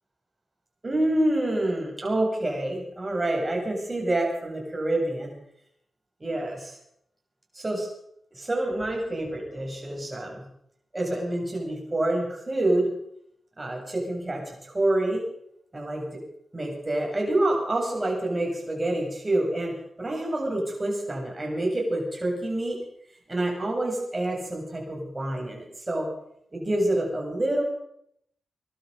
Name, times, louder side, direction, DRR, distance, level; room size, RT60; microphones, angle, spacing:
voice 1, 0.8-5.3 6.2-6.8 7.5-7.9 8.3-10.4 10.9-12.9 13.6-15.3 15.7-16.2 16.5-22.8 23.3-26.1 26.5-27.6, right 1 dB, 25° right, 0 dB, 8.0 m, -27 dB
22.0 x 12.0 x 5.4 m, 0.72 s
cardioid pair, 55°, 0 cm